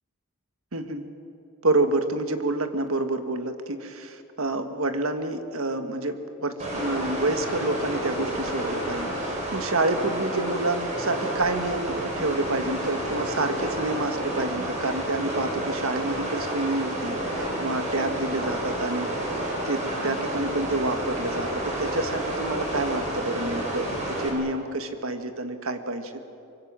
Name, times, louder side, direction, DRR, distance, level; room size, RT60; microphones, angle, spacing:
voice 1, 0.7-1.1 1.6-19.1 19.6-26.3, right 2 dB, 70° right, 7 dB, 1.7 m, -28 dB
sound 1, 6.6-24.3, right 1 dB, 30° right, 5.0 m, -30 dB
24.5 x 24.0 x 7.6 m, 2.7 s
head